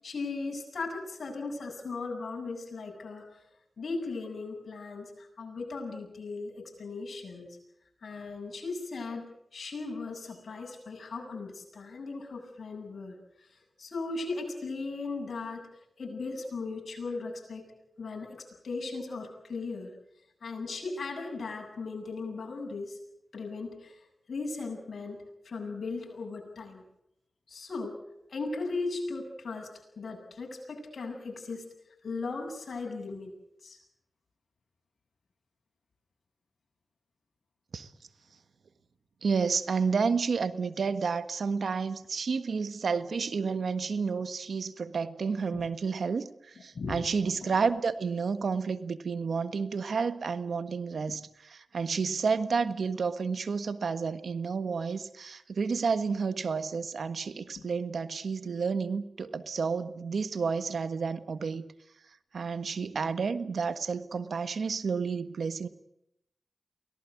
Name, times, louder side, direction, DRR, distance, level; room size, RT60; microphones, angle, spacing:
voice 1, 0.0-3.2 3.8-7.6 8.0-9.3 9.5-13.2 13.4-15.6 16.0-17.6 18.0-19.9 20.4-23.0 23.3-24.0 24.3-26.8 27.5-28.0 28.3-31.6 32.0-33.3 33.6-33.8 45.5-45.6 46.7-47.0 47.3-47.6, left 3 dB, 70° left, 2 dB, 7.8 m, -37 dB
voice 2, 39.2-61.6 62.3-65.7, right 5 dB, 75° right, 12 dB, 1.4 m, -30 dB
24.0 x 18.0 x 9.5 m, 0.81 s
cardioid pair, 50°, 0 cm